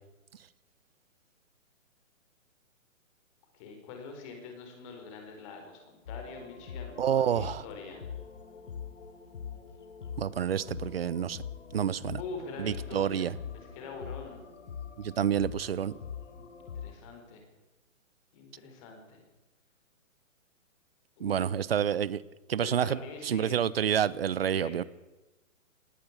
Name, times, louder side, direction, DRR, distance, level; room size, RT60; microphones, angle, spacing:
voice 1, 3.5-8.0 12.2-13.3 13.7-14.4 16.4-17.5 18.3-19.2 21.2-21.5 22.6-23.6 24.5-24.8, left 4 dB, 25° left, 4 dB, 4.3 m, -44 dB
sound 1, 6.1-16.9, left 7 dB, 60° left, 3.7 m, -43 dB
voice 2, 7.0-7.6 10.2-11.4 11.7-12.2 12.6-13.3 15.0-15.9 21.2-22.2 22.5-24.8, right 9 dB, 45° right, 20 dB, 0.9 m, -28 dB
18.5 x 17.5 x 8.2 m, 1.1 s
hypercardioid pair, 170°, 41 cm